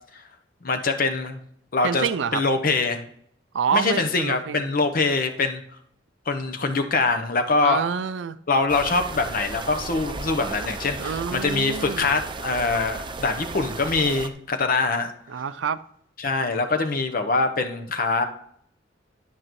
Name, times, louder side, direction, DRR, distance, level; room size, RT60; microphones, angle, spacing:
voice 1, 0.6-1.4 1.7-2.1 2.3-3.0 3.7-5.6 6.3-7.9 8.5-15.1 16.2-18.2, left 3 dB, 50° left, 0.9 m, -24 dB
voice 2, 1.8-2.4 3.5-4.6 7.6-8.4 11.0-12.1 15.3-15.8, right 6 dB, 80° right, 0.4 m, -27 dB
sound 1, 8.7-14.3, right 3 dB, 25° right, 0.5 m, -35 dB
10.5 x 8.8 x 3.1 m
head